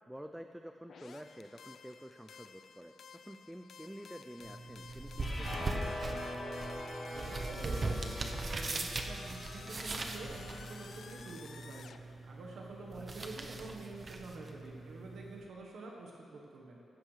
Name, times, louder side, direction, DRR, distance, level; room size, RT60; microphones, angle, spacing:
voice 1, 0.1-6.2 13.0-13.3, equal, 5° right, 6 dB, 0.4 m, -49 dB
sound 1, 0.9-12.0, left 6 dB, 65° left, 0.4 m, -54 dB
sound 2, 4.4-15.4, right 2 dB, 35° right, 0.8 m, -41 dB
sound 3, 5.2-11.4, left 1 dB, 35° left, 3.3 m, -44 dB
voice 2, 7.1-16.8, right 2 dB, 80° right, -2 dB, 1.2 m, -48 dB
15.5 x 13.0 x 3.3 m, 2.7 s
wide cardioid pair, 120°, 0 cm